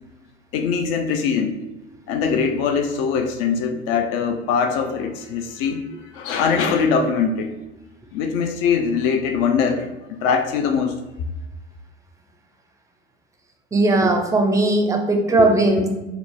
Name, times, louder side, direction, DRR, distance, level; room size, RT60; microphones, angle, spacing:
voice 1, 0.5-1.6 2.1-7.5 8.1-11.0, left 6 dB, 40° left, 5 dB, 0.4 m, -22 dB
voice 2, 13.7-15.9, right 2 dB, 10° right, 3 dB, 0.5 m, -18 dB
4.5 x 2.1 x 3.5 m, 1.1 s
figure-of-eight pair, 75°, 33 cm